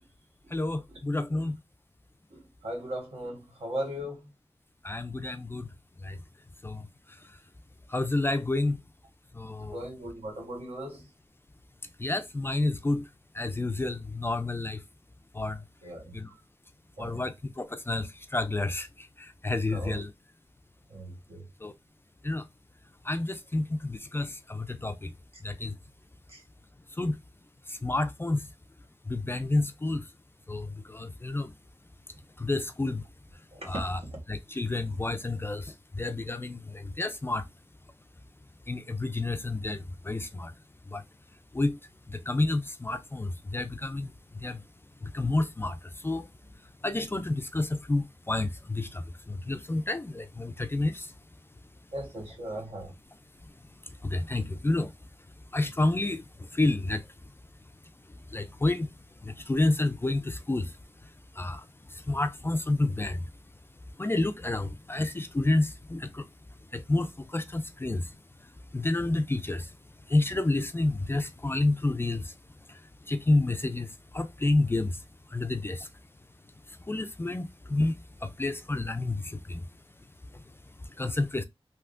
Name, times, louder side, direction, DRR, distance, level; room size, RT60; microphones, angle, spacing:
voice 1, 0.5-1.6 4.8-5.7 6.0-6.2 6.6-7.4 7.9-8.8 9.3-9.8 12.0-13.1 13.3-14.8 15.3-15.6 16.1-16.3 17.0-20.1 21.6-21.7 22.2-22.5 23.0-25.1 25.4-25.7 26.9-27.2 27.7-28.5 29.1-30.1 30.5-31.5 32.4-33.0 33.6-34.0 34.3-37.5 38.7-40.5 40.9-41.0 41.5-41.8 42.1-44.6 45.0-46.3 46.8-51.1 53.8-54.9 55.5-57.1 58.3-58.9 59.2-60.8 61.0-63.3 64.0-66.3 66.7-68.2 68.7-69.7 70.1-72.3 72.7-75.9 76.7-79.6 80.3-80.4 80.8-81.4, left 2 dB, 20° left, 0.3 m, -30 dB
voice 2, 2.3-4.3 9.7-11.1 15.8-16.2 17.0-17.2 19.7-20.0 20.9-21.5 26.3-26.4 33.5-34.1 51.9-52.9, right 1 dB, 75° right, 1.4 m, -38 dB
3.3 x 2.7 x 2.4 m
wide cardioid pair, 100°, 10 cm